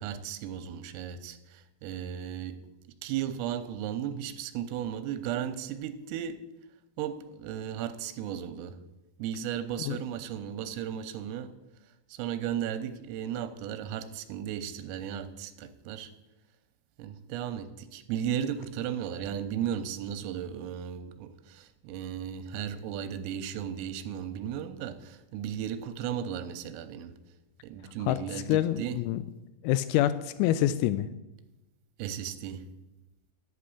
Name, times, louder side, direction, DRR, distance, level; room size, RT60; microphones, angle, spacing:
voice 1, 0.0-2.6 3.0-6.4 7.0-8.8 9.2-11.5 11.8-16.1 17.0-27.1 27.6-29.0 32.0-32.7, right 9 dB, 90° right, 10 dB, 3.6 m, -35 dB
voice 2, 28.5-29.2 29.6-31.1, left 13 dB, 90° left, 14 dB, 3.3 m, -26 dB
11.5 x 8.8 x 8.4 m, 1.0 s
omnidirectional pair, 5.9 m